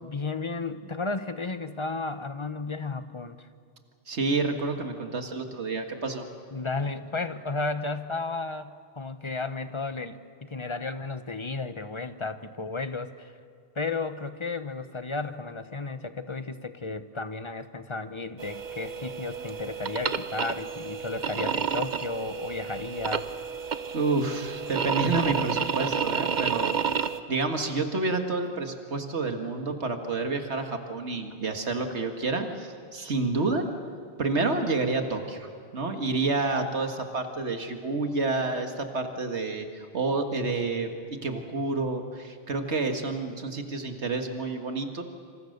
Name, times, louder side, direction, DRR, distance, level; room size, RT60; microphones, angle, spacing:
voice 1, 0.0-3.5 6.5-13.3 13.7-23.3, left 3 dB, 30° left, 10 dB, 1.0 m, -33 dB
voice 2, 4.1-6.3 23.9-26.8 27.3-33.6 34.2-45.0, right 3 dB, 80° right, 5 dB, 2.1 m, -29 dB
sound 1, 18.4-27.2, right 6 dB, 45° right, 0.9 m, -30 dB
26.5 x 26.5 x 6.7 m, 2.2 s
omnidirectional pair, 1.1 m